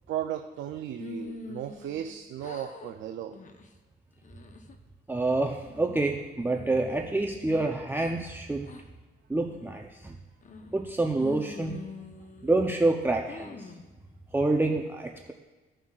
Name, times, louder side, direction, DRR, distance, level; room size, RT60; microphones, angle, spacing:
voice 1, 0.1-3.4, right 10 dB, 75° right, 5 dB, 0.5 m, -35 dB
sound 1, 1.0-2.1 2.4-2.9 3.3-3.7 4.2-4.7 5.3-6.0 6.4-8.1 8.6-8.8 9.4-9.8 10.4-10.9 11.2-12.8 13.3-13.9, left 3 dB, 40° left, 0.8 m, -44 dB
voice 2, 5.1-8.7 9.3-10.1 10.7-11.8 12.4-13.6 14.3-15.3, right 2 dB, 10° right, 2 dB, 0.6 m, -27 dB
15.5 x 5.6 x 2.4 m, 1.3 s
cardioid pair, 90°, 20 cm